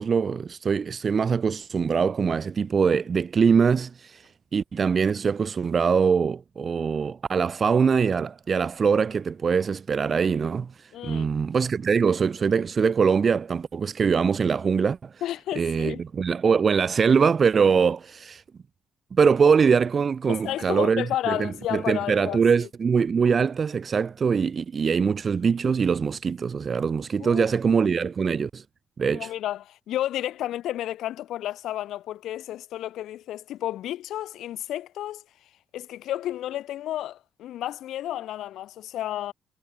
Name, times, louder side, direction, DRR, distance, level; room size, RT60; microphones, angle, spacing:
voice 1, 0.0-15.2 15.6-18.4 19.1-28.6 29.0-29.3, right 6 dB, 45° right, 0.4 m, -23 dB
voice 2, 10.9-11.3 15.2-16.0 20.3-22.7 27.2-27.5 29.1-35.2 35.7-39.3, left 13 dB, 80° left, 1.2 m, -32 dB
cardioid pair, 90°, 0 cm